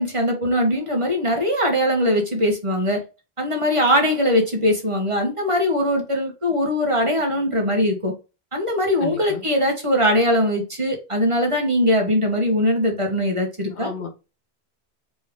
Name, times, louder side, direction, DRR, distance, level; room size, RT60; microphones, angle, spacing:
voice 1, 0.0-3.0 3.4-8.1 8.5-13.9, equal, 30° right, 1.2 m, -21 dB
voice 2, 9.0-9.4 13.7-14.1, left 5 dB, 90° left, 1.4 m, -32 dB
4.3 x 3.3 x 3.6 m
omnidirectional pair, 1.1 m